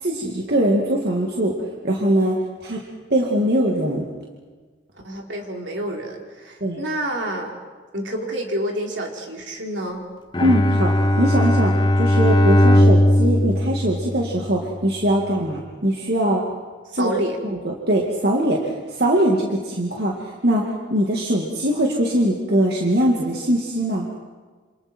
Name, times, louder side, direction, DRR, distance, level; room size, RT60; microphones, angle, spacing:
voice 1, 0.0-1.5 1.8-2.8 3.1-4.1 6.6-6.8 10.4-16.4 16.9-17.1 17.4-24.1, right 1 dB, 55° right, -2 dB, 2.4 m, -21 dB
voice 2, 5.0-7.5 7.9-10.1 16.9-17.4, right 1 dB, 70° right, 0 dB, 3.7 m, -28 dB
Bowed string instrument, 10.3-14.7, left 1 dB, 25° left, 1.0 m, -18 dB
28.0 x 27.5 x 4.6 m, 1.4 s
head